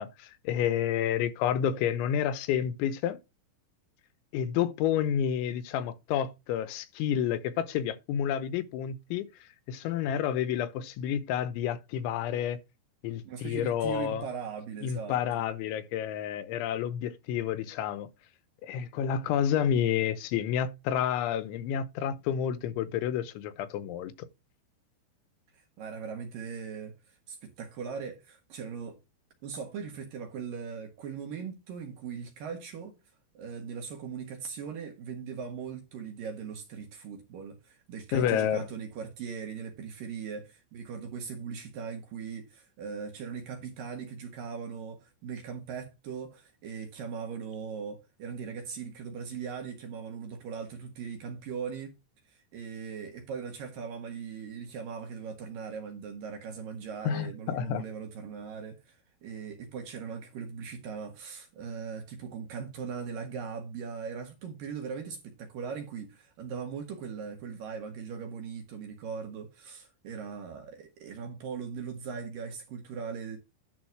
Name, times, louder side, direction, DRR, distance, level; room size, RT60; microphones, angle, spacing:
voice 1, 0.0-3.2 4.3-12.6 13.0-14.2 14.8-18.1 18.6-24.1 38.1-38.7 57.0-57.8, left 9 dB, 85° left, 3.2 m, -30 dB
voice 2, 13.3-15.4 25.5-29.0 29.4-33.0 33.3-52.0 52.3-73.4, right 6 dB, 60° right, 2.5 m, -39 dB
11.0 x 4.0 x 6.0 m
omnidirectional pair, 5.4 m